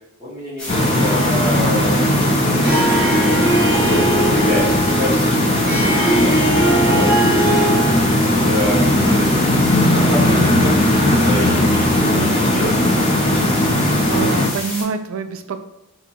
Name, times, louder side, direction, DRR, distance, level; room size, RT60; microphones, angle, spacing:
voice 1, 0.2-2.8 3.7-6.3 6.6-9.4 9.9-12.7, left 1 dB, 15° right, -14 dB, 1.4 m, -27 dB
sound 1, 0.6-14.8, left 1 dB, 5° left, 0.9 m, -29 dB
sound 2, 0.7-14.5, left 1 dB, 25° left, 0.5 m, -17 dB
Harp, 2.6-8.1, right 1 dB, 45° right, 1.4 m, -20 dB
voice 2, 14.1-15.6, right 5 dB, 65° right, 7 dB, 0.4 m, -26 dB
3.5 x 2.8 x 4.2 m, 0.92 s
head